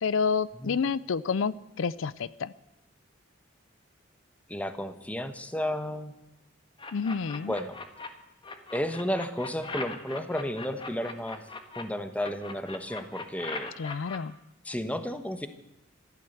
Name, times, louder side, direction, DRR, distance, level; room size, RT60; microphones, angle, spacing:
voice 1, 0.0-2.5 6.9-7.5 13.8-14.4, left 5 dB, 80° left, 19 dB, 0.5 m, -29 dB
voice 2, 4.5-6.1 7.5-7.8 8.7-11.4 11.8-13.7 14.6-15.5, equal, 5° left, 10 dB, 1.1 m, -32 dB
sound 1, 6.8-8.1 8.4-11.8 12.2-14.2, left 3 dB, 25° left, 1.4 m, -39 dB
15.0 x 12.0 x 7.9 m, 0.95 s
head